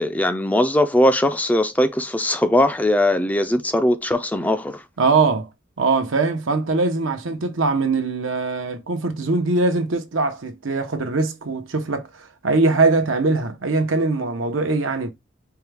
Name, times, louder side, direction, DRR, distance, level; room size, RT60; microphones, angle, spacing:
voice 1, 0.0-4.8, left 1 dB, 10° left, 0.4 m, -20 dB
voice 2, 5.0-5.5 5.8-15.1, right 3 dB, 80° right, 0.8 m, -21 dB
4.6 x 2.3 x 3.3 m
head